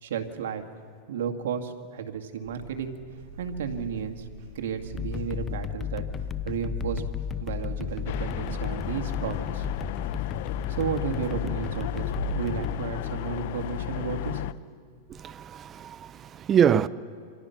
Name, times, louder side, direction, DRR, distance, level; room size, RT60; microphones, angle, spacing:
voice 1, 0.0-0.6 1.1-3.0 3.4-4.3 4.6-6.0 6.5-7.0 7.4-9.7 10.7-14.7, right 7 dB, 75° right, 2.1 m, -33 dB
sound 1, 2.4-12.7, right 3 dB, 50° right, 5.4 m, -41 dB
sound 2, 4.9-12.7, left 8 dB, 20° left, 0.6 m, -33 dB
sound 3, 8.1-14.5, left 13 dB, 60° left, 0.7 m, -34 dB
voice 2, 15.1-16.9, right 8 dB, 25° right, 0.6 m, -24 dB
28.5 x 25.5 x 5.9 m
supercardioid pair, 140°, 0 cm